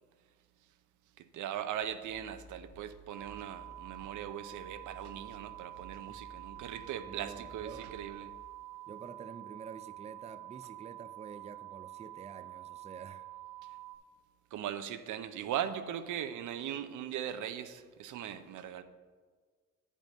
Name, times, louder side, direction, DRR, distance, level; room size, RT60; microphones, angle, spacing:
voice 1, 1.2-8.3 14.5-18.8, right 10 dB, 75° right, 10 dB, 0.6 m, -39 dB
sound 1, 1.8-8.3, right 2 dB, 60° right, 1.4 m, -56 dB
sound 2, 3.1-14.0, right 16 dB, 5° left, 1.2 m, -48 dB
voice 2, 7.1-7.8 8.9-13.3, right 6 dB, 20° right, 11 dB, 0.4 m, -48 dB
9.0 x 5.2 x 5.3 m, 1.6 s
cardioid pair, 90°, 30 cm